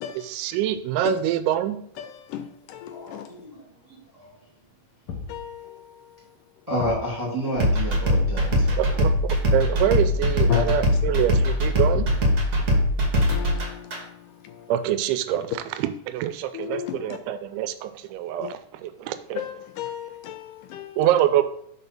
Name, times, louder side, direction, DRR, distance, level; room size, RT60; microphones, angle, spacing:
voice 1, 0.1-1.8 8.8-9.1 9.5-12.1 14.7-19.4 21.0-21.4, right 11 dB, 80° right, 2.0 m, -25 dB
voice 2, 2.0-3.3 5.3-5.9 8.2-8.3 10.5-10.8 13.3-14.2 14.4-14.7 16.5-17.2 18.4-18.5 19.4-21.0, left 10 dB, 80° left, 2.0 m, -33 dB
voice 3, 2.9-3.6 4.1-4.3 6.7-8.7, equal, 15° right, 1.4 m, -29 dB
Thump thud, 5.1-5.5 6.8-7.1 8.5-8.8 10.2-10.6 11.9-12.5, left 4 dB, 55° left, 1.6 m, -34 dB
sound 1, 7.6-14.0, left 1 dB, 55° right, 1.1 m, -22 dB
5.4 x 4.0 x 5.9 m
omnidirectional pair, 3.9 m